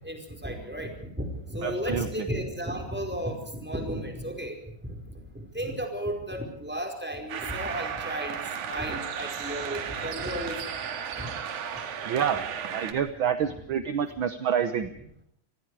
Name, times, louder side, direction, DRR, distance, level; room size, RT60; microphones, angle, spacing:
voice 1, 0.0-4.6 4.8-8.4 8.6-10.8 11.1-11.3 13.4-13.5, equal, 5° right, 3 dB, 4.7 m, -34 dB
voice 2, 1.6-2.3 12.0-14.9, right 8 dB, 60° right, 10 dB, 1.4 m, -28 dB
sound 1, 7.3-12.9, right 7 dB, 85° right, 3.2 m, -34 dB
28.0 x 20.5 x 4.9 m, 0.67 s
omnidirectional pair, 3.4 m